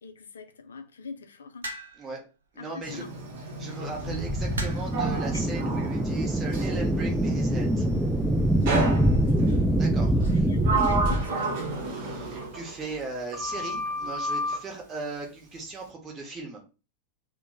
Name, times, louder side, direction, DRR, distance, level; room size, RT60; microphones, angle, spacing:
voice 1, 0.0-1.7 2.6-3.1 8.8-9.3 10.2-11.6, left 4 dB, 70° left, 0.5 m, -41 dB
sound 1, 1.6-2.1 3.4-3.6 4.5-5.0 6.0-6.3, right 2 dB, 70° right, 0.6 m, -36 dB
voice 2, 2.5-3.1 3.6-7.9 9.7-10.5 11.8-16.6, right 3 dB, 20° right, 0.9 m, -38 dB
Sliding door, 2.8-6.8 8.7-9.5 10.2-13.1 13.3-14.6, right 2 dB, 45° right, 0.9 m, -31 dB
sound 2, 3.9-11.2, right 1 dB, 5° right, 0.4 m, -24 dB
2.9 x 2.1 x 3.6 m
figure-of-eight pair, 90°, 0 cm